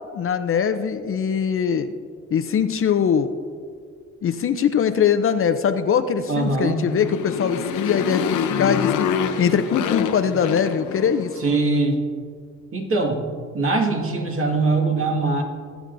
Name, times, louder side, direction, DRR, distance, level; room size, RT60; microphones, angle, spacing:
voice 1, 0.1-1.9 2.3-3.3 4.2-9.1 9.4-11.3, left 7 dB, 45° left, 10 dB, 0.6 m, -22 dB
voice 2, 6.3-6.8 11.4-12.0 12.7-13.3 13.5-15.4, right 3 dB, 45° right, 1 dB, 1.9 m, -22 dB
Motorcycle, 6.8-11.4, left 7 dB, 80° left, 0.8 m, -26 dB
20.0 x 8.2 x 2.6 m, 2.1 s
cardioid pair, 90°, 30 cm